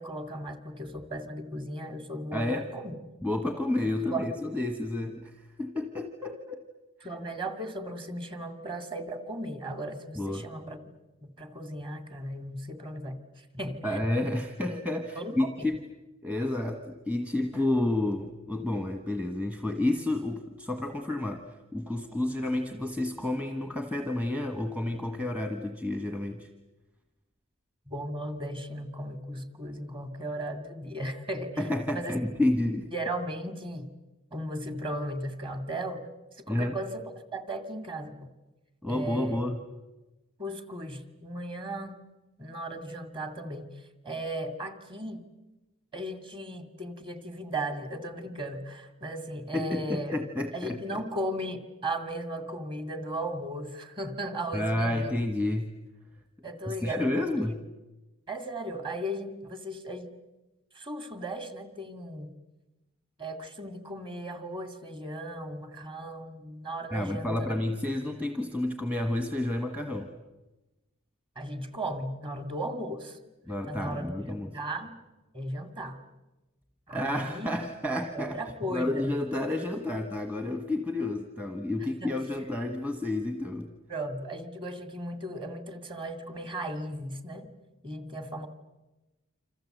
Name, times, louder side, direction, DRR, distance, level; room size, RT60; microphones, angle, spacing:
voice 1, 0.0-2.9 3.8-4.3 7.0-10.8 11.2-13.8 15.2-15.7 27.9-31.6 31.9-32.3 32.9-33.9 34.3-36.1 36.4-37.0 37.3-38.3 38.9-39.4 40.4-42.0 42.4-43.7 44.0-45.2 45.9-50.2 50.5-55.1 56.4-57.6 58.3-60.2 60.7-62.3 63.2-67.6 71.4-73.2 73.7-74.9 75.3-76.0 76.9-77.5 78.1-79.1 82.0-82.1 83.9-87.5 87.8-88.5, right 1 dB, 25° right, 8 dB, 2.2 m, -36 dB
voice 2, 2.3-2.7 3.2-6.7 10.2-10.5 13.8-15.8 16.2-26.5 31.6-32.9 36.5-36.8 38.8-39.6 49.5-51.0 54.5-55.7 56.7-57.6 66.9-70.1 73.5-74.5 76.9-78.4 78.7-83.7, left 1 dB, 5° right, 6 dB, 1.2 m, -30 dB
28.0 x 26.5 x 7.9 m, 1.1 s
head